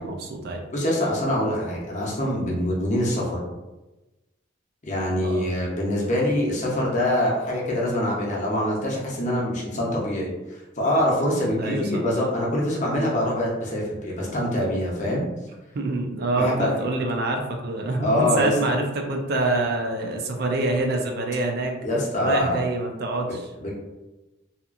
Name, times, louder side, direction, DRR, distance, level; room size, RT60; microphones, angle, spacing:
voice 1, 0.0-0.6 5.2-5.5 11.6-12.0 15.7-21.7 22.2-23.5, right 2 dB, 55° right, 3 dB, 0.4 m, -26 dB
voice 2, 0.7-3.4 4.8-15.2 16.4-16.7 18.0-18.5 21.8-22.6 23.3-23.4 23.6-23.7, left 1 dB, 40° left, -3 dB, 0.7 m, -24 dB
2.8 x 2.4 x 2.4 m, 1.1 s
head